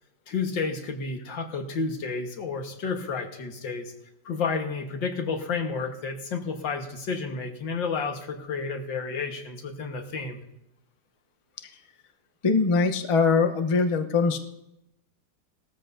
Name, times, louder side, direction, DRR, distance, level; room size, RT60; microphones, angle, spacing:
voice 1, 0.3-3.9 4.3-10.4, left 4 dB, 85° left, 4 dB, 2.2 m, -31 dB
voice 2, 12.4-14.4, left 4 dB, 30° left, 6 dB, 0.6 m, -22 dB
19.0 x 14.0 x 2.7 m, 0.85 s
omnidirectional pair, 2.0 m